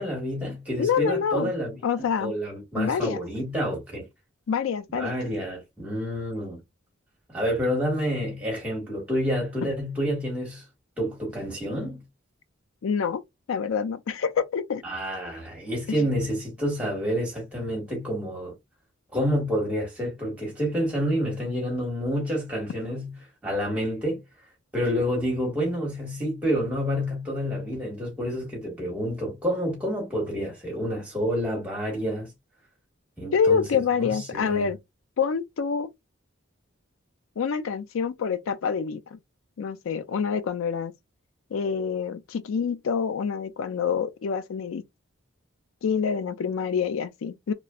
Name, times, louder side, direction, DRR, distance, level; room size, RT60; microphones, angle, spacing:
voice 1, 0.0-1.8 2.2-4.1 4.9-6.6 7.3-10.6 11.0-12.0 14.8-18.5 19.1-23.1 23.4-24.2 24.7-32.3 33.2-34.7, equal, 5° right, 1.3 m, -28 dB
voice 2, 0.8-1.5 1.8-2.3 2.8-3.2 4.5-5.2 9.6-9.7 12.8-13.2 13.5-14.8 15.9-16.1 33.3-34.8 35.2-35.9 37.4-39.2 39.6-40.9 41.5-44.8 45.8-47.5, left 6 dB, 80° left, 0.4 m, -26 dB
3.0 x 2.4 x 2.3 m
head